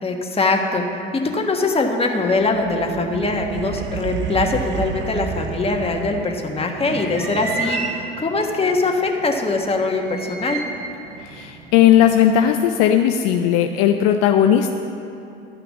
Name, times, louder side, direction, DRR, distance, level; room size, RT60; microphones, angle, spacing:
voice 1, 0.0-0.8 1.1-10.6, left 3 dB, 20° left, 2 dB, 1.4 m, -22 dB
sound 1, 2.3-6.6, right 8 dB, 40° right, 0.6 m, -30 dB
sound 2, 4.3-12.5, right 3 dB, 80° right, 1.7 m, -34 dB
voice 2, 11.2-14.7, left 10 dB, 55° left, 6 dB, 0.6 m, -16 dB
12.0 x 5.8 x 7.1 m, 2.7 s
hypercardioid pair, 70°, 29 cm